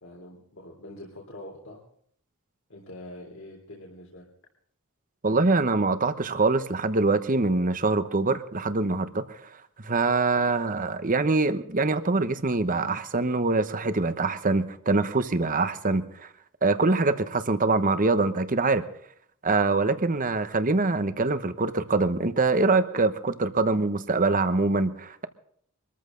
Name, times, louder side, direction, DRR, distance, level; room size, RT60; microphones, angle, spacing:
voice 1, 0.0-1.8 2.7-4.3, left 1 dB, 70° left, -2 dB, 3.5 m, -44 dB
voice 2, 5.2-9.4 9.8-16.3 16.6-18.8 19.4-25.3, right 3 dB, 40° right, 11 dB, 1.1 m, -24 dB
24.0 x 14.0 x 3.9 m, 0.63 s
head